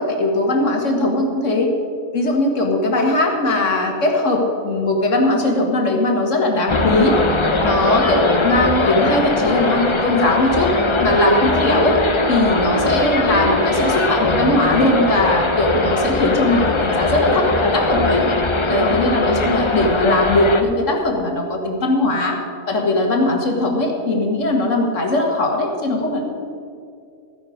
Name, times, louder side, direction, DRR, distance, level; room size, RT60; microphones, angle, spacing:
voice 1, 0.0-1.7 2.1-7.2 7.6-10.7 11.0-12.0 12.3-18.3 18.7-22.4 22.7-26.2, left 2 dB, 50° left, 1 dB, 2.0 m, -19 dB
sound 1, 6.7-20.6, left 2 dB, 30° left, 0.5 m, -20 dB
15.0 x 10.0 x 5.0 m, 2.4 s
omnidirectional pair, 1.7 m